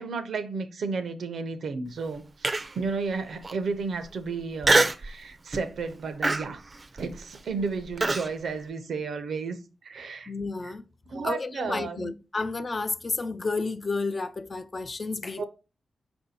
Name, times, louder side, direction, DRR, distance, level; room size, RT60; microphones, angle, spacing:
voice 1, 0.0-2.5 2.7-6.6 6.9-9.6 9.8-10.3 11.1-12.1 15.4-15.5, right 4 dB, 75° right, 0.6 m, -32 dB
Human voice, 2.4-2.9 3.4-3.5 4.6-5.1 5.5-5.8 6.2-8.3, right 2 dB, 35° right, 0.4 m, -24 dB
voice 2, 10.3-10.8 11.2-15.4, left 3 dB, 35° left, 0.3 m, -31 dB
4.4 x 2.6 x 4.1 m
wide cardioid pair, 110°, 0 cm